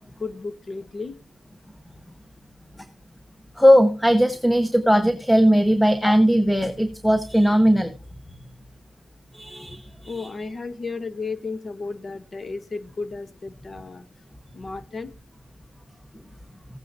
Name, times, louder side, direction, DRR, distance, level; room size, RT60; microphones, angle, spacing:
voice 1, 0.2-1.2 6.1-6.2 10.0-14.0 14.5-15.1, left 4 dB, 45° left, 13 dB, 1.1 m, -33 dB
voice 2, 3.6-7.9 9.3-10.3, equal, 5° left, 10 dB, 1.0 m, -18 dB
16.0 x 9.2 x 2.7 m, 0.32 s
wide cardioid pair, 95°, 0 cm